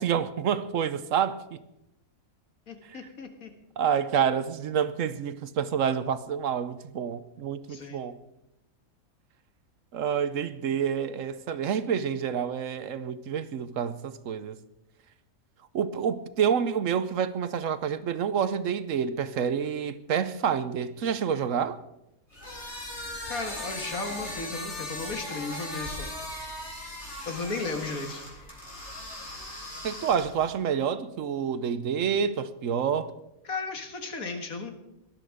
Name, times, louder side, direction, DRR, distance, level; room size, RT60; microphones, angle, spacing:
voice 1, 0.0-1.6 2.9-3.0 3.8-8.2 9.9-14.6 15.7-21.8 29.8-33.1, right 7 dB, 65° right, 1.1 m, -28 dB
voice 2, 2.7-3.5 7.7-8.1 23.3-26.5 27.3-28.3 33.4-34.7, left 3 dB, 80° left, 2.3 m, -35 dB
sound 1, 22.3-30.5, left 1 dB, 50° left, 4.1 m, -38 dB
18.5 x 12.0 x 5.0 m
omnidirectional pair, 1.5 m